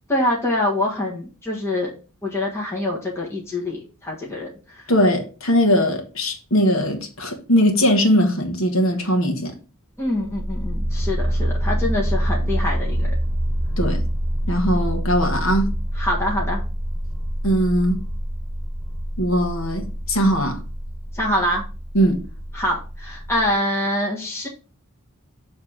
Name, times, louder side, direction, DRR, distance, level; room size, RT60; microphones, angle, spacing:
voice 1, 0.1-1.9 2.2-4.5 10.0-13.1 15.9-16.6 21.1-21.6 22.5-24.5, left 1 dB, 10° left, 1.4 m, -25 dB
voice 2, 4.9-9.6 13.8-14.1 14.5-15.7 17.4-18.0 19.2-20.6 21.9-22.2, equal, 65° left, 1.5 m, -20 dB
sound 1, 10.1-23.5, equal, 5° right, 1.8 m, -26 dB
7.1 x 3.5 x 5.8 m
head